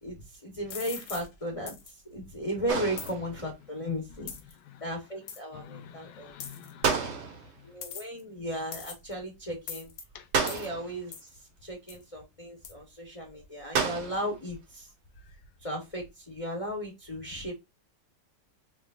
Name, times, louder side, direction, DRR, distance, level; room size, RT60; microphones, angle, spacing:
voice 1, 0.0-4.3 4.8-6.3 7.6-9.9 10.4-11.3 11.6-14.9 15.6-17.5, equal, 25° left, 1.0 m, -36 dB
sound 1, 0.7-1.3 1.7-1.9 3.0-3.1 4.3-4.5 5.3-5.4 6.4-6.7 7.8-8.2 8.7-9.1 9.7-10.0 10.5-10.7 11.1-11.3 11.9-12.0 12.6-12.7, left 7 dB, 65° left, 1.3 m, -40 dB
sound 2, 2.7-3.6 6.8-7.7 10.3-11.1 13.7-14.4, right 5 dB, 70° right, 1.5 m, -30 dB
voice 2, 4.1-4.8 5.5-7.7 10.1-10.3, left 9 dB, 85° left, 1.4 m, -49 dB
5.2 x 3.1 x 2.5 m
omnidirectional pair, 1.9 m